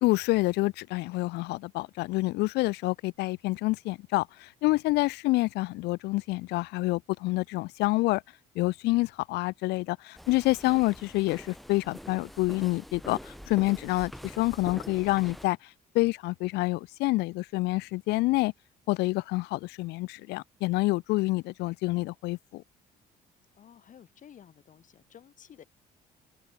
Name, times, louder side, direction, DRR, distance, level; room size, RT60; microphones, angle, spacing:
voice 1, 0.0-8.2 8.6-15.6 15.9-18.5 18.9-22.6, left 21 dB, 85° left, 0.6 m, -27 dB
sound 1, 10.1-15.5, equal, ahead, 0.7 m, -45 dB
voice 2, 23.5-25.6, left 9 dB, 50° left, 3.2 m, -53 dB
open air
cardioid pair, 110°, 17 cm